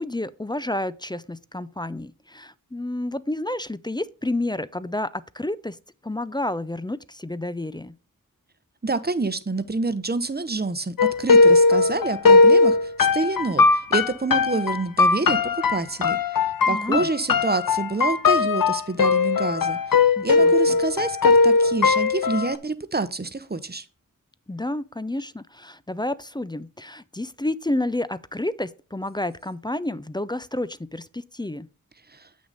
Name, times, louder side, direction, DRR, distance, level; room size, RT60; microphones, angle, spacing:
voice 1, 0.0-5.8 6.0-7.9 16.7-17.1 20.2-20.8 24.5-31.7, left 1 dB, 15° left, 0.4 m, -30 dB
voice 2, 8.8-15.4 15.7-23.9 32.1-32.3, right 3 dB, 30° right, 0.8 m, -27 dB
sound 1, 11.0-22.5, left 4 dB, 80° left, 0.6 m, -19 dB
7.9 x 6.2 x 4.0 m
wide cardioid pair, 50°, 34 cm